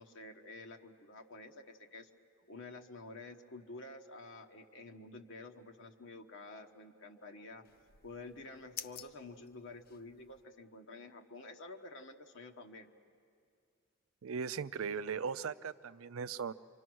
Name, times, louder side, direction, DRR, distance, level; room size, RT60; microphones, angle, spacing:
voice 1, 0.0-2.1 2.5-7.7 8.0-12.9, left 2 dB, 65° left, 4 dB, 1.2 m, -50 dB
sound 1, 7.6-10.4, left 9 dB, 45° left, 0.6 m, -51 dB
voice 2, 14.2-16.5, right 6 dB, 75° right, 15 dB, 0.5 m, -38 dB
27.5 x 25.0 x 6.2 m, 2.3 s
head